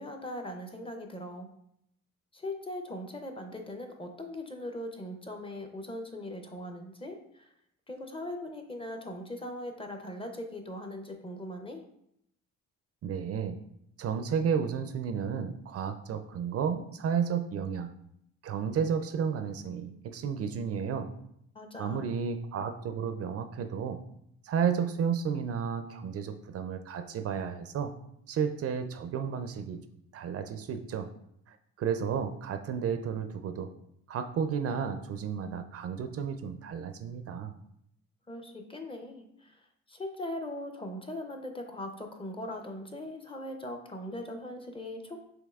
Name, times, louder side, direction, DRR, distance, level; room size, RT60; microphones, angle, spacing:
voice 1, 0.0-1.5 2.3-7.5 7.9-11.8 21.5-22.0 38.3-39.6 39.9-45.2, left 1 dB, 20° left, 4 dB, 0.5 m, -40 dB
voice 2, 13.0-13.6 14.0-17.9 18.4-21.1 21.8-24.0 24.4-27.9 28.3-29.8 30.1-31.1 31.5-33.7 34.1-37.5, right 7 dB, 50° right, 8 dB, 0.4 m, -32 dB
5.3 x 3.0 x 2.3 m, 0.74 s
cardioid pair, 90°, 30 cm